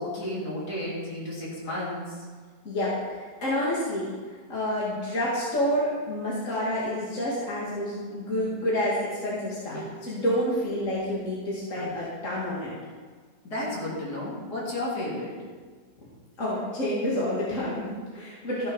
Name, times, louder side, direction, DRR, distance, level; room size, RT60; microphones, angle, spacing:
voice 1, 0.0-2.2 9.7-9.9 11.8-12.0 13.4-15.5, left 1 dB, 65° left, -6 dB, 3.8 m, -33 dB
voice 2, 2.6-4.1 4.5-12.8 16.4-18.7, equal, 45° left, -7 dB, 2.8 m, -29 dB
13.5 x 8.2 x 5.7 m, 1.5 s
omnidirectional pair, 1.8 m